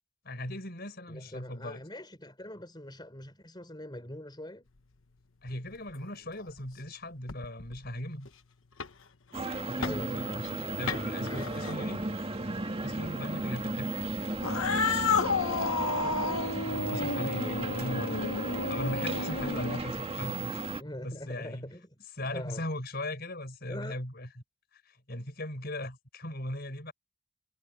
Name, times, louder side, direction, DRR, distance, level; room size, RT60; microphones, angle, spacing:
voice 1, 0.2-1.8 5.4-8.3 9.7-10.4 10.8-12.0 12.8-14.0 15.6-15.7 16.9-18.2 18.7-20.6 21.0-21.7 22.2-24.3 24.7-26.9, left 1 dB, 45° left, 6.0 m, -38 dB
voice 2, 1.1-4.7 9.7-12.1 15.2-16.6 20.8-22.0 22.3-22.7 23.7-23.9, left 1 dB, 20° left, 4.1 m, -44 dB
sound 1, 4.7-12.6, left 5 dB, 70° left, 1.2 m, -44 dB
sound 2, 9.3-20.8, right 2 dB, 25° right, 1.8 m, -35 dB
Cat, 14.4-20.0, left 4 dB, 85° left, 1.8 m, -31 dB
head